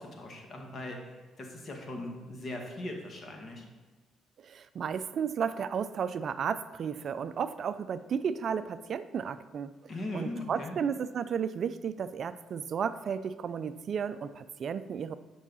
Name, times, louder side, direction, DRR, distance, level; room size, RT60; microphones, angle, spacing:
voice 1, 0.0-3.7 9.9-10.8, left 1 dB, 45° left, 1 dB, 1.8 m, -39 dB
voice 2, 4.4-9.7 10.1-15.1, right 7 dB, 55° right, 13 dB, 0.4 m, -33 dB
10.0 x 5.5 x 4.1 m, 1.3 s
cardioid pair, 80°, 0 cm